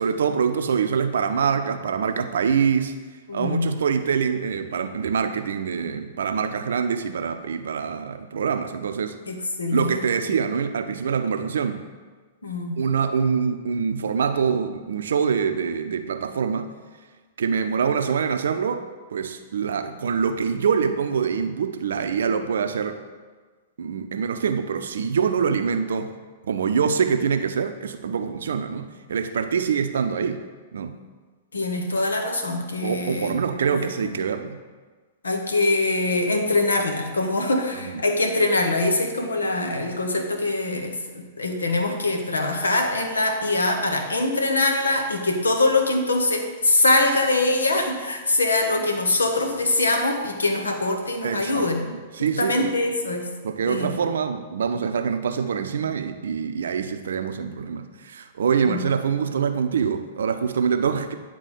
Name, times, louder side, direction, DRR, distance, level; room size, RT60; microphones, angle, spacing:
voice 1, 0.0-2.9 3.3-9.2 9.7-11.8 12.8-16.7 17.4-23.0 23.8-26.1 26.4-30.4 30.7-31.0 32.8-34.6 37.7-38.0 51.2-52.7 53.4-61.1, right 6 dB, 70° right, 8 dB, 0.6 m, -25 dB
voice 2, 3.3-3.7 9.3-10.0 12.4-12.8 31.5-33.4 34.0-34.2 35.2-51.8 52.2-53.3 53.7-53.9 58.6-58.9, left 2 dB, 80° left, 4 dB, 1.0 m, -23 dB
9.2 x 3.6 x 5.1 m, 1.4 s
figure-of-eight pair, 105°, 0 cm